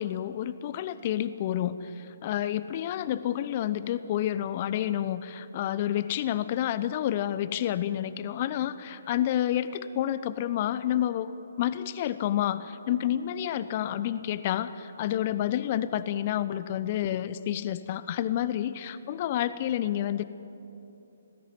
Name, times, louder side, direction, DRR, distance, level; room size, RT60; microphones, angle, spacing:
voice 1, 0.0-1.9 2.2-11.3 11.6-20.3, left 11 dB, 35° left, 14 dB, 0.7 m, -29 dB
19.5 x 15.5 x 9.5 m, 2.9 s
figure-of-eight pair, 135°, 0 cm